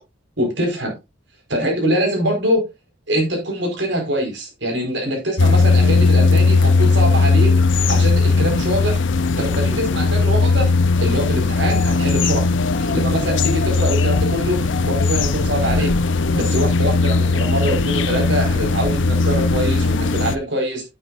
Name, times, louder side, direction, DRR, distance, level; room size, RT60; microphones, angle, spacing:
voice 1, 0.4-0.9 1.5-2.6 3.1-7.5 7.9-9.0 9.4-10.7 11.0-12.5 12.9-15.9 16.3-20.8, equal, 65° right, 4.8 m, -23 dB
sound 1, 5.4-20.4, left 3 dB, 70° left, 0.6 m, -18 dB
9.4 x 9.4 x 2.5 m
head